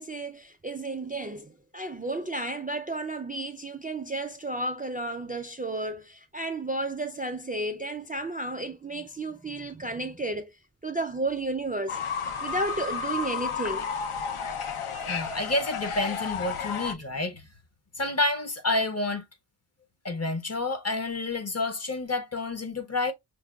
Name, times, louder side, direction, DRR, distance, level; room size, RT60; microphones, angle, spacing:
voice 1, 0.0-10.5 10.8-12.0 12.4-13.9, right 2 dB, 20° right, 0.3 m, -32 dB
Fowl / Bird, 11.9-16.9, left 6 dB, 85° left, 0.7 m, -32 dB
voice 2, 15.1-17.4 18.0-19.2 20.0-23.1, left 2 dB, 35° left, 0.6 m, -29 dB
5.9 x 2.2 x 2.2 m
wide cardioid pair, 130°, 49 cm